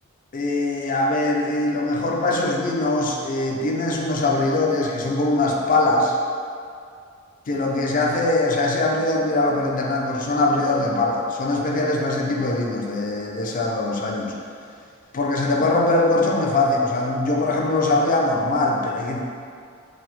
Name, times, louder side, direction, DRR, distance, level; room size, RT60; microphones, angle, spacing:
voice 1, 0.3-6.2 7.5-14.3 15.1-19.2, left 2 dB, 40° left, -1 dB, 0.5 m, -22 dB
4.6 x 2.1 x 4.0 m, 2.3 s
head